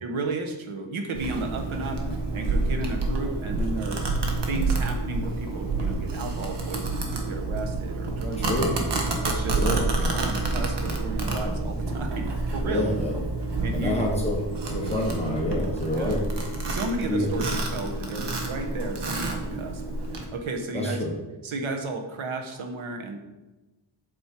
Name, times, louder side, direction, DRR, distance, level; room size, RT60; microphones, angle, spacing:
voice 1, 0.0-2.0 2.3-4.0 4.5-8.8 9.2-13.0 13.6-14.0 14.9-15.0 15.9-16.2 16.7-19.8 20.1-21.0 21.4-23.2, right 3 dB, 85° right, 4 dB, 1.2 m, -33 dB
Domestic sounds home sounds, 1.1-20.2, right 3 dB, 60° right, 1.3 m, -28 dB
voice 2, 8.4-8.8 9.5-9.8 12.7-13.2 13.7-14.4 14.7-16.3 17.1-17.3 20.7-21.1, left 1 dB, 15° left, -2 dB, 1.2 m, -27 dB
7.8 x 5.3 x 4.5 m, 1.1 s
wide cardioid pair, 155°, 47 cm